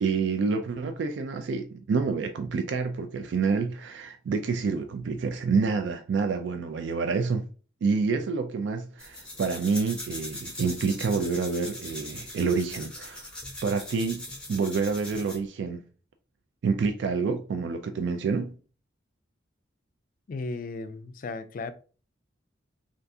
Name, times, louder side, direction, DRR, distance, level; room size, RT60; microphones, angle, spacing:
voice 1, 0.0-7.4 7.8-13.2 13.6-15.8 16.6-18.5, right 4 dB, 70° right, 0.3 m, -28 dB
sound 1, 9.0-15.5, left 1 dB, 5° left, 0.9 m, -40 dB
voice 2, 20.3-21.7, left 3 dB, 45° left, 0.3 m, -35 dB
3.5 x 2.4 x 2.6 m
head